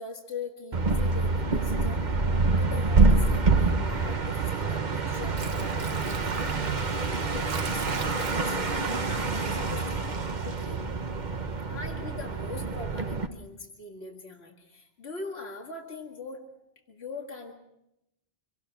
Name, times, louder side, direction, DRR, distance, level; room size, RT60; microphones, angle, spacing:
voice 1, 0.0-2.1 2.6-10.8 11.7-16.4 16.9-17.5, left 3 dB, 85° left, 1 dB, 2.2 m, -42 dB
sound 1, 0.7-13.3, right 3 dB, 45° right, 1.3 m, -26 dB
Water / Sink (filling or washing), 5.0-10.8 11.2-11.3, right 6 dB, 75° right, 1.2 m, -42 dB
26.0 x 18.0 x 5.9 m, 0.83 s
omnidirectional pair, 1.0 m